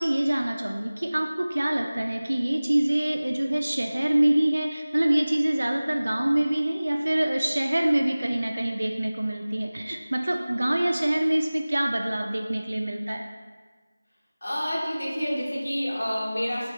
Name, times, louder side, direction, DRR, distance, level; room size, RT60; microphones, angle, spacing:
voice 1, 0.0-13.2, right 1 dB, 85° right, 2 dB, 0.4 m, -25 dB
voice 2, 14.4-16.7, equal, 75° left, -6 dB, 1.2 m, -28 dB
3.6 x 2.4 x 4.3 m, 1.5 s
figure-of-eight pair, 180°, 0 cm